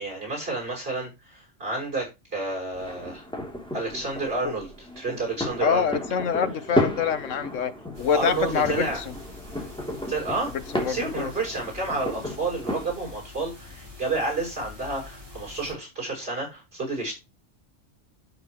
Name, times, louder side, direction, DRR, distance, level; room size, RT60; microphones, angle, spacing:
voice 1, 0.0-3.2 3.7-5.9 8.1-9.0 10.1-10.5 10.8-17.2, right 3 dB, 50° right, 6.7 m, -30 dB
sound 1, 2.7-12.9, equal, 5° left, 3.1 m, -33 dB
voice 2, 5.6-7.7 8.0-9.0 10.7-11.3, left 7 dB, 85° left, 1.3 m, -25 dB
sound 2, 7.9-15.7, left 3 dB, 20° right, 3.8 m, -45 dB
12.0 x 6.6 x 3.1 m
omnidirectional pair, 1.3 m